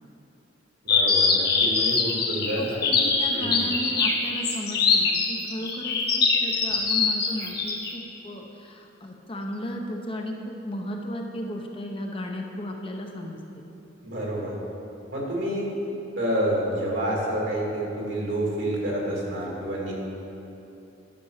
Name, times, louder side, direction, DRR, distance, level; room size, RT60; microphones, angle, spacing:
voice 1, 0.8-2.9 3.3-3.6 14.0-14.5 15.1-15.7 16.2-19.9, right 1 dB, 75° right, -3 dB, 2.5 m, -28 dB
sound 1, 0.9-7.9, left 5 dB, 55° left, 1.3 m, -23 dB
voice 2, 2.6-13.6, equal, 30° left, 2 dB, 0.8 m, -35 dB
11.0 x 6.0 x 6.6 m, 2.9 s
head